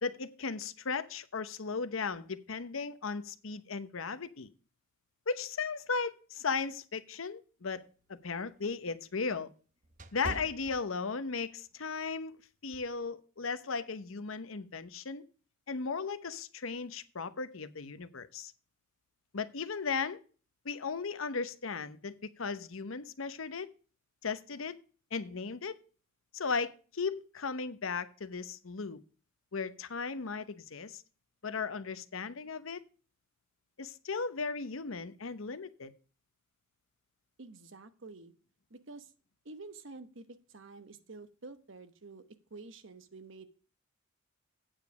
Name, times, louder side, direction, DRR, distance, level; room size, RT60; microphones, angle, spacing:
voice 1, 0.0-4.5 5.3-7.8 8.1-9.5 10.1-15.2 15.7-18.5 19.3-20.2 20.6-23.7 24.2-24.8 25.1-25.8 26.3-29.0 29.5-31.0 31.4-32.8 33.8-35.9, left 4 dB, 80° left, 0.9 m, -36 dB
sound 1, 7.7-11.4 11.9-12.1 12.7-13.0, right 1 dB, 40° right, 0.8 m, -45 dB
voice 2, 37.4-38.3 38.7-39.1 39.4-43.4, right 3 dB, 65° right, 1.1 m, -49 dB
8.8 x 7.3 x 4.8 m
head